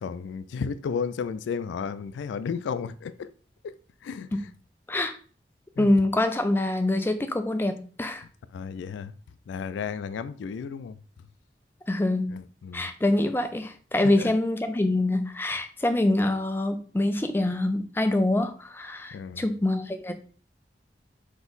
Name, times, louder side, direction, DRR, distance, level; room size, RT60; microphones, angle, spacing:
voice 1, 0.0-3.1 4.0-4.3 5.8-5.9 8.5-9.1 9.5-10.9 12.3-12.9 19.1-19.4, left 6 dB, 90° left, 0.3 m, -33 dB
voice 2, 5.8-8.2 11.9-12.4 12.7-20.1, left 1 dB, 10° left, 0.4 m, -25 dB
3.9 x 2.9 x 3.9 m
head